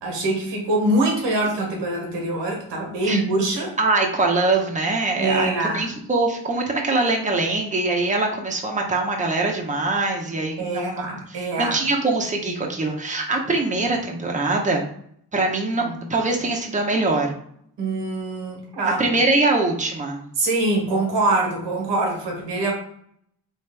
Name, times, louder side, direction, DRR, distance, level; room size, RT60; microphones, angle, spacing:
voice 1, 0.0-3.7 5.2-5.9 10.6-11.8 15.7-15.9 17.8-19.0 20.4-22.7, right 2 dB, 85° right, -1 dB, 1.3 m, -24 dB
voice 2, 3.8-14.8 15.3-15.8 16.1-17.3 19.0-20.2, right 2 dB, 20° right, 0 dB, 0.9 m, -23 dB
3.2 x 3.1 x 3.4 m, 0.65 s
cardioid pair, 55°, 42 cm